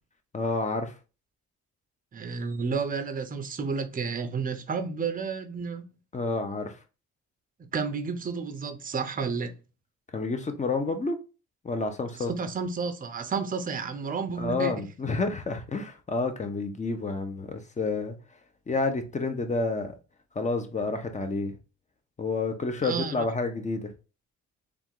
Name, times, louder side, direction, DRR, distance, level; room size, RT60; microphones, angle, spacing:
voice 1, 0.3-0.9 6.1-6.7 10.1-11.2 11.6-12.3 14.4-18.2 18.7-19.9 20.3-21.6 22.2-23.9, left 3 dB, 25° left, 0.9 m, -29 dB
voice 2, 2.1-5.8 7.7-9.5 12.3-14.8 22.8-23.3, right 5 dB, 30° right, 0.6 m, -31 dB
3.4 x 2.5 x 4.6 m
cardioid pair, 90°, 30 cm